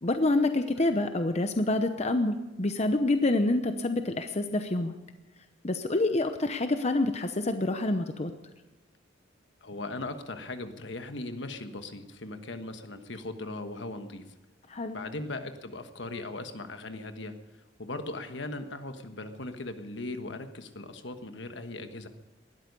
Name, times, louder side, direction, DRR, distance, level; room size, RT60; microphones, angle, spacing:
voice 1, 0.0-5.0 5.6-8.3 14.7-15.0, left 2 dB, 35° left, 8 dB, 0.8 m, -27 dB
voice 2, 9.6-14.2 14.9-22.1, left 2 dB, 70° left, 8 dB, 1.4 m, -39 dB
19.0 x 13.0 x 5.4 m, 1.1 s
head